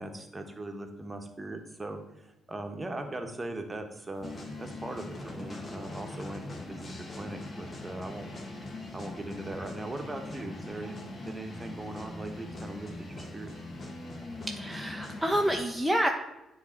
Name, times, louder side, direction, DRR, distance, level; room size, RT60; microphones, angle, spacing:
voice 1, 0.0-4.3 4.6-8.3 8.9-11.0 11.3-13.5, right 2 dB, 25° right, 5 dB, 1.2 m, -39 dB
sound 1, 4.2-15.6, left 2 dB, 45° left, 1.6 m, -41 dB
voice 2, 14.5-16.1, right 1 dB, ahead, 2 dB, 0.7 m, -28 dB
9.4 x 3.3 x 4.4 m, 0.95 s
hypercardioid pair, 45°, 0 cm